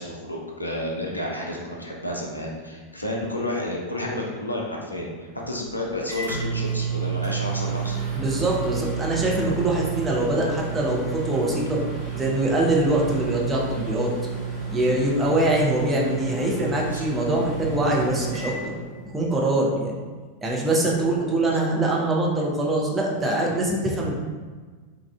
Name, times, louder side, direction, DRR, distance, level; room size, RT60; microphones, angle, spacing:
voice 1, 0.0-8.0 16.9-17.0, left 1 dB, 85° left, -2 dB, 0.4 m, -31 dB
Microwave oven, 5.4-19.4, right 6 dB, 40° right, 1.1 m, -31 dB
voice 2, 8.1-11.8 12.1-14.1 14.7-18.8 19.1-19.9 20.4-24.2, right 1 dB, 15° right, -3 dB, 0.6 m, -23 dB
3.2 x 2.4 x 2.3 m, 1.4 s
figure-of-eight pair, 90°, 0 cm